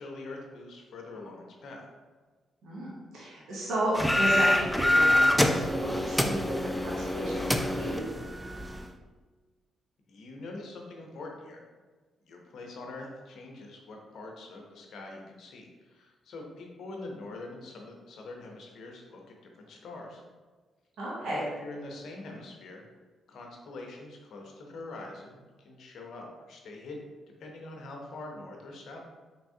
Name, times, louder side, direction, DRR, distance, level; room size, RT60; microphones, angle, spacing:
voice 1, 0.0-1.8 10.1-11.6 12.2-20.2 21.2-22.9 23.3-27.1 27.4-29.0, left 2 dB, 70° left, 1 dB, 0.6 m, -44 dB
voice 2, 2.6-8.1 21.0-21.4, right 1 dB, 75° right, -6 dB, 0.8 m, -33 dB
sound 1, 3.9-8.9, left 1 dB, 5° left, 0.3 m, -26 dB
3.4 x 2.9 x 2.7 m, 1.3 s
supercardioid pair, 55°, 0 cm